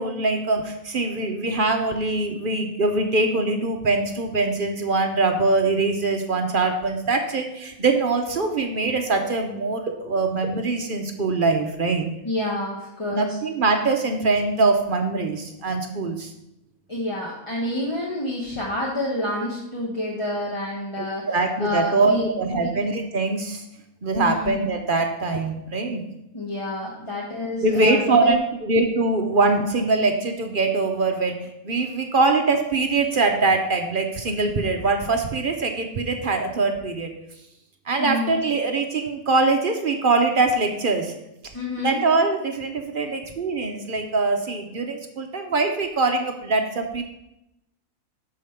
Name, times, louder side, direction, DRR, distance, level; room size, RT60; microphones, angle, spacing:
voice 1, 0.0-12.1 13.1-16.3 21.0-23.6 24.0-26.0 27.6-31.4 31.6-37.1 37.9-41.1 41.8-47.0, right 3 dB, 50° right, 4 dB, 0.7 m, -23 dB
voice 2, 12.2-13.4 16.9-21.3 21.6-22.2 22.5-22.7 24.1-24.5 26.3-28.4 38.0-38.4 41.5-42.0, left 1 dB, 20° left, -4 dB, 1.0 m, -28 dB
6.6 x 5.0 x 5.6 m, 0.87 s
omnidirectional pair, 1.5 m